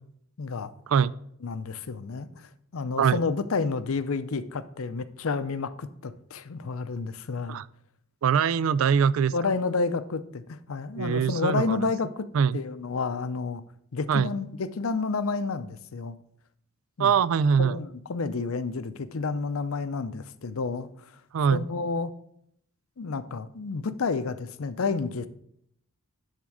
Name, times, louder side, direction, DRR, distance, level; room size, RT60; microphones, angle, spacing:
voice 1, 0.4-0.7 1.4-7.6 9.3-12.3 12.5-13.6 13.9-16.2 17.0-17.1 17.6-21.1 21.5-22.1 23.0-25.3, left 4 dB, 70° left, 13 dB, 0.6 m, -30 dB
voice 2, 8.2-9.3 11.0-11.9 12.3-12.6 14.1-14.3 17.0-17.8 21.3-21.6, right 7 dB, 65° right, 19 dB, 0.3 m, -23 dB
10.5 x 3.7 x 6.2 m, 0.71 s
head